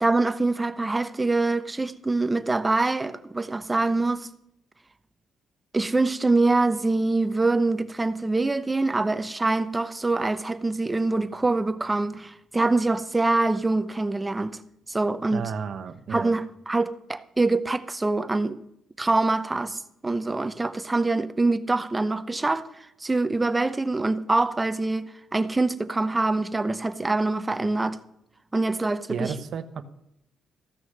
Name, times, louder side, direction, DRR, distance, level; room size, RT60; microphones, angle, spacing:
voice 1, 0.0-4.3 5.7-14.6 14.9-15.5 16.1-18.6 19.0-28.0 28.5-29.3, right 2 dB, 20° right, 0.8 m, -25 dB
voice 2, 15.3-16.3 29.1-29.8, right 6 dB, 60° right, 1.0 m, -32 dB
15.0 x 6.3 x 6.6 m
cardioid pair, 90°, 0 cm